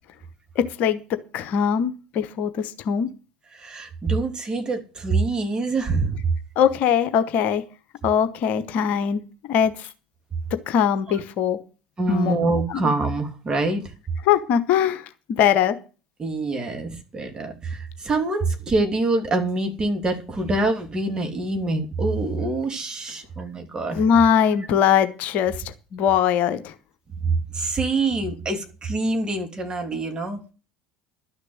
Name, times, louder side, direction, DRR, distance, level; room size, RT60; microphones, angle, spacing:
voice 1, 0.5-1.0 1.3-3.1 6.6-7.6 8.0-9.2 9.5-9.9 10.7-11.6 12.1-12.3 12.7-12.9 14.2-15.8 23.9-25.5 25.9-26.7, left 8 dB, 55° left, 1.0 m, -21 dB
voice 2, 3.5-6.2 12.0-13.9 16.2-24.0 27.2-30.4, right 3 dB, 25° right, 3.1 m, -25 dB
12.0 x 6.6 x 8.0 m
figure-of-eight pair, 65°, 3 cm